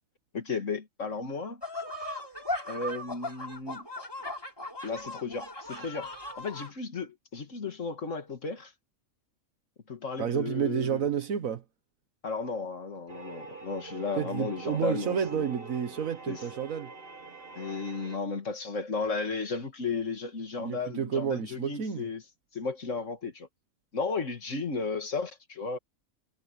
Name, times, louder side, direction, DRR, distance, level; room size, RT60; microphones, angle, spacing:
voice 1, 0.3-1.6 2.0-2.2 2.7-3.9 4.8-8.7 9.9-11.1 12.2-15.5 16.3-16.4 17.5-22.2 22.5-23.5 23.9-25.8, left 4 dB, 65° left, 2.4 m, -34 dB
sound 1, 1.6-6.7, left 1 dB, 15° left, 4.0 m, -38 dB
voice 2, 10.2-11.6 14.2-16.9 20.6-22.1, right 8 dB, 80° right, 1.5 m, -30 dB
sound 2, 13.1-18.2, right 3 dB, 45° right, 1.9 m, -45 dB
omnidirectional pair, 1.4 m